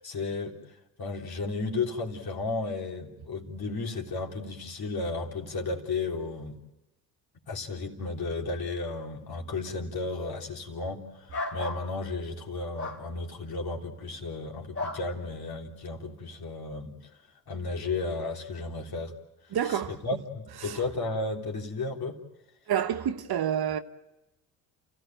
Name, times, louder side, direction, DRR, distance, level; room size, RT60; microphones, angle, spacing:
voice 1, 0.0-6.6 7.5-17.1 17.5-19.1 19.4-22.2, left 3 dB, 50° left, 3.5 m, -34 dB
sound 1, 11.3-11.9 12.8-13.0 14.7-15.0, left 3 dB, 30° left, 3.3 m, -33 dB
voice 2, 19.5-20.0 20.6-20.8 22.7-23.8, right 9 dB, 50° right, 1.2 m, -28 dB
29.0 x 15.0 x 9.1 m
hypercardioid pair, 55°, 46 cm